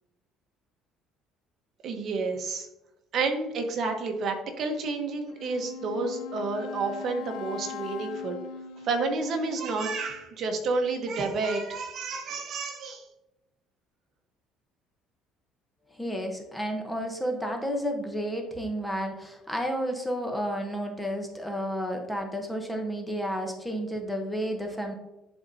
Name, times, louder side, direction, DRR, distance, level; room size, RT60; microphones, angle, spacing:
voice 1, 1.8-2.7 3.1-8.4 8.8-13.1, right 3 dB, 50° right, 4 dB, 1.1 m, -30 dB
Wind instrument woodwind instrument, 5.3-10.2, left 7 dB, 80° left, 0.6 m, -40 dB
voice 2, 15.9-24.9, equal, 5° left, 3 dB, 1.0 m, -31 dB
10.5 x 4.0 x 2.7 m, 0.93 s
cardioid pair, 130°, 0 cm